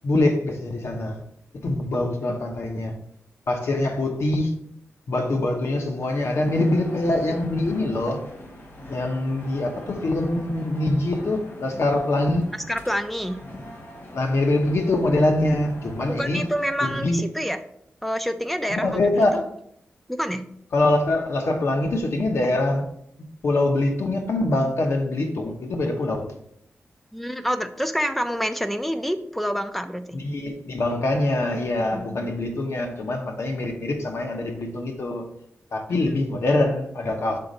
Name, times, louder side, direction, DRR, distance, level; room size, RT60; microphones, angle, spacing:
voice 1, 0.0-1.2 1.6-3.0 3.5-4.5 5.1-8.2 8.9-12.5 14.1-16.5 17.0-17.3 18.7-19.5 20.7-22.9 23.4-26.3 30.1-35.2 35.7-37.4, left 2 dB, 70° left, 1.1 m, -24 dB
sound 1, 6.1-17.0, left 1 dB, 50° left, 1.4 m, -42 dB
voice 2, 12.7-13.4 16.2-17.6 18.0-19.4 20.1-20.4 27.1-30.2 31.9-32.3 35.9-36.1, equal, 5° left, 0.5 m, -27 dB
5.8 x 3.9 x 5.2 m
wide cardioid pair, 100°, 5 cm